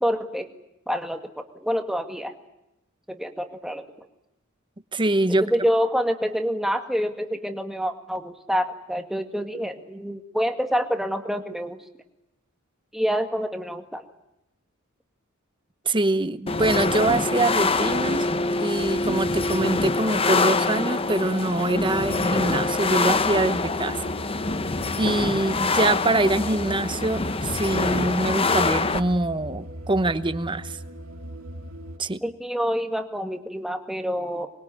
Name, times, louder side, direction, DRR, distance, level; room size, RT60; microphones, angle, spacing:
voice 1, 0.0-0.5 0.9-2.3 3.1-4.1 5.4-11.8 12.9-14.0 32.2-34.5, equal, ahead, 5 dB, 2.0 m, -27 dB
voice 2, 4.9-5.4 15.8-18.2 18.6-24.1 25.0-30.8 32.0-32.2, right 2 dB, 25° right, 13 dB, 1.0 m, -24 dB
sound 1, 16.5-29.0, left 3 dB, 25° left, 1.0 m, -25 dB
sound 2, 21.0-32.0, right 1 dB, 85° right, 2.7 m, -39 dB
25.5 x 21.5 x 9.7 m, 0.87 s
head